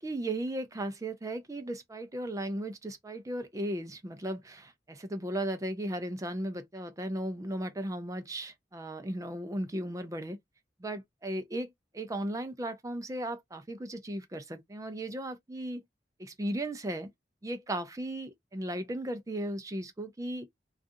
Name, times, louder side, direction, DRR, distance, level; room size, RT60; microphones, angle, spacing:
voice 1, 0.0-10.4 10.8-15.8 16.2-17.1 17.4-20.5, right 1 dB, 20° right, 0.5 m, -36 dB
2.4 x 2.4 x 2.5 m
head